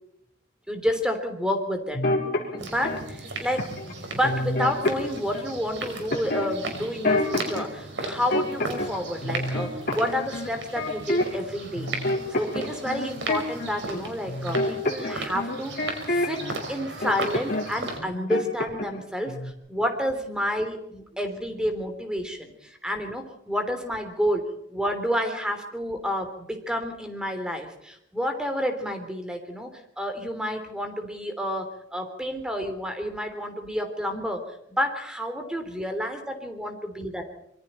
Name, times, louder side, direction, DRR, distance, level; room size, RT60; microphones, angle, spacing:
voice 1, 0.7-2.1 2.5-11.9 12.3-16.4 16.7-29.7 30.0-34.4 34.7-37.3, equal, 5° right, 6 dB, 3.3 m, -30 dB
sound 1, 1.9-3.0 3.6-3.9 4.2-5.5 6.1-7.7 8.0-9.0 9.2-11.5 11.7-16.6 17.0-17.7 18.0-19.0 19.3-19.5, left 1 dB, 45° left, 4.6 m, -28 dB
sound 2, 2.6-18.0, right 2 dB, 60° right, 5.6 m, -36 dB
26.0 x 23.5 x 4.5 m, 0.77 s
head